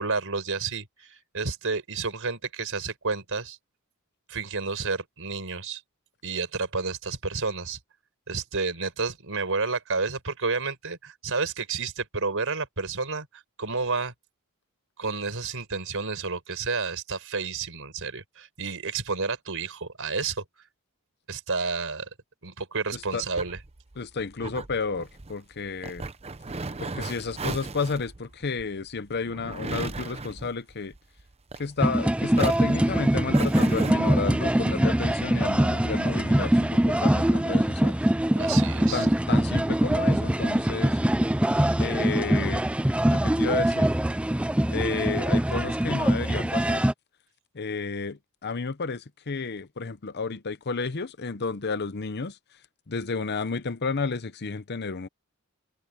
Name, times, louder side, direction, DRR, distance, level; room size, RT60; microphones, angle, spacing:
voice 1, 0.0-3.6 4.3-5.8 6.2-7.8 8.3-14.1 15.0-20.6 21.3-22.1 22.4-23.6 38.4-39.1 41.5-41.7, right 4 dB, 65° right, 5.3 m, -30 dB
voice 2, 22.9-23.2 24.0-26.0 26.8-30.9 31.6-38.0 38.9-41.0 41.8-42.6 43.1-43.9 44.7-46.8 47.5-52.4 52.9-55.1, left 4 dB, 50° left, 0.8 m, -31 dB
sound 1, 22.9-32.0 32.3-33.9, right 3 dB, 30° right, 0.8 m, -36 dB
sound 2, 31.8-46.9, right 1 dB, 5° right, 0.4 m, -23 dB
head